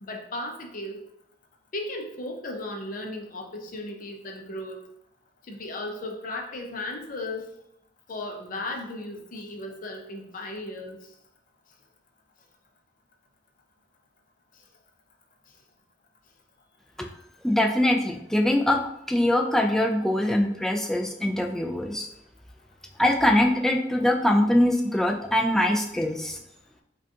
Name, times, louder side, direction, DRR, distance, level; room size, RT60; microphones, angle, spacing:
voice 1, 0.0-1.0 1.7-4.9 5.5-7.5 8.1-11.0, left 2 dB, 45° left, 2 dB, 0.6 m, -35 dB
voice 2, 17.4-18.8 19.1-22.1 23.0-26.4, left 1 dB, ahead, 2 dB, 0.3 m, -23 dB
4.9 x 2.3 x 2.8 m, 0.78 s
head